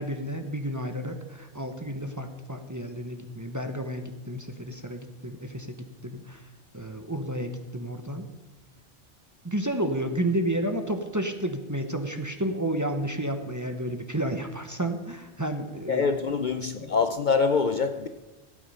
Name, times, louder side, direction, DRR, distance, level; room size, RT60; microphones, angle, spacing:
voice 1, 0.0-6.4 6.7-8.3 9.4-16.0, right 1 dB, 15° right, 6 dB, 0.9 m, -31 dB
voice 2, 15.9-18.1, left 5 dB, 50° left, 9 dB, 0.7 m, -25 dB
15.5 x 8.6 x 5.5 m, 1.2 s
omnidirectional pair, 1.2 m